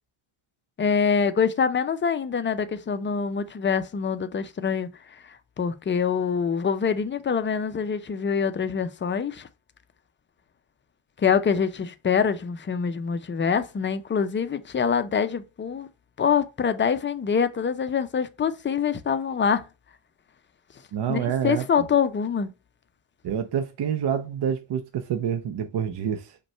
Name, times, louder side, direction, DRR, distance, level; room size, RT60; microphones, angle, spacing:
voice 1, 0.8-4.9 5.3-9.5 11.2-15.9 16.2-19.6 21.1-22.5, left 6 dB, 25° left, 0.4 m, -25 dB
voice 2, 20.9-21.9 23.2-26.4, right 8 dB, 55° right, 0.6 m, -27 dB
5.2 x 2.2 x 4.2 m
cardioid pair, 100°, 50 cm